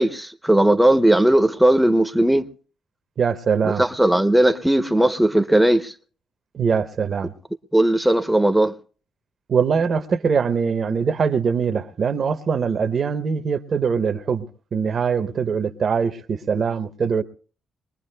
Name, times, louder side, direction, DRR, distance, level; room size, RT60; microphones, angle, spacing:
voice 1, 0.0-2.5 3.8-5.9 7.7-8.7, right 1 dB, 5° right, 0.6 m, -17 dB
voice 2, 3.2-3.8 6.5-7.3 9.5-14.5 14.7-17.2, right 6 dB, 50° right, 0.8 m, -22 dB
22.5 x 20.0 x 2.2 m
cardioid pair, 90°, 0 cm